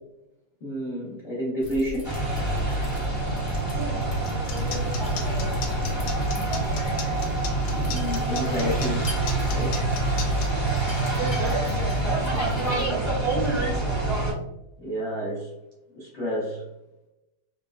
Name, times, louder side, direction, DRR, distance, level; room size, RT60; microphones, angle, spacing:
voice 1, 0.6-2.3 7.8-9.1 9.5-9.9 14.8-15.5 15.9-16.6, equal, 60° left, -8 dB, 0.7 m, -30 dB
sound 1, 1.6-12.8, left 2 dB, 35° left, 0.9 m, -40 dB
sound 2, 2.0-14.3, right 2 dB, 15° right, 0.7 m, -26 dB
voice 2, 3.7-5.7 9.1-9.2 11.7-13.9, right 2 dB, 75° right, -3 dB, 1.8 m, -38 dB
sound 3, 4.3-10.5, left 7 dB, 90° left, 1.5 m, -36 dB
4.2 x 2.0 x 2.3 m, 0.92 s
omnidirectional pair, 2.3 m